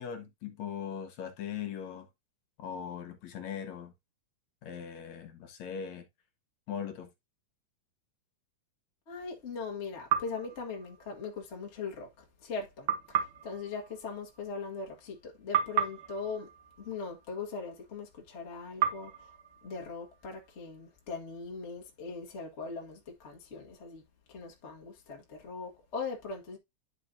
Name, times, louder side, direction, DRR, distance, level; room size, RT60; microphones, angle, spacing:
voice 1, 0.0-2.1 2.6-3.9 4.6-6.1 6.7-7.1, left 8 dB, 65° left, 2.2 m, -39 dB
voice 2, 9.1-16.5 16.8-19.3 19.6-24.0 24.3-26.6, left 4 dB, 40° left, 0.9 m, -40 dB
sound 1, 10.1-11.5 12.9-15.2 15.5-17.8 18.8-20.7, right 8 dB, 80° right, 1.1 m, -35 dB
10.5 x 5.1 x 2.6 m
omnidirectional pair, 3.8 m